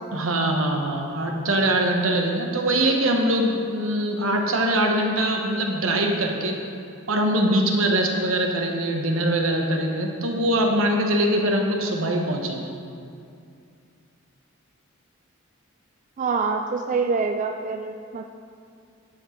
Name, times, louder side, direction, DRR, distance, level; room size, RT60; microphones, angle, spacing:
voice 1, 0.1-6.5 7.1-12.7, right 1 dB, 75° right, 2 dB, 1.1 m, -23 dB
voice 2, 16.2-18.2, right 4 dB, 40° right, 5 dB, 0.3 m, -25 dB
9.8 x 7.3 x 4.4 m, 2.4 s
head